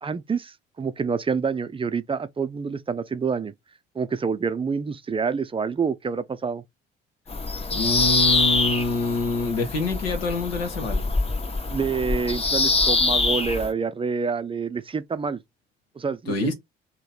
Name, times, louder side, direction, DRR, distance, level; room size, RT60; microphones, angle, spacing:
voice 1, 0.0-3.5 3.9-6.6 11.7-15.4 16.0-16.3, right 5 dB, 20° right, 0.5 m, -27 dB
Bird vocalization bird call bird song, 7.3-13.7, left 3 dB, 20° left, 0.9 m, -24 dB
voice 2, 7.7-11.0 16.3-16.5, left 2 dB, 75° left, 0.9 m, -26 dB
2.9 x 2.8 x 3.8 m
figure-of-eight pair, 50°, 29 cm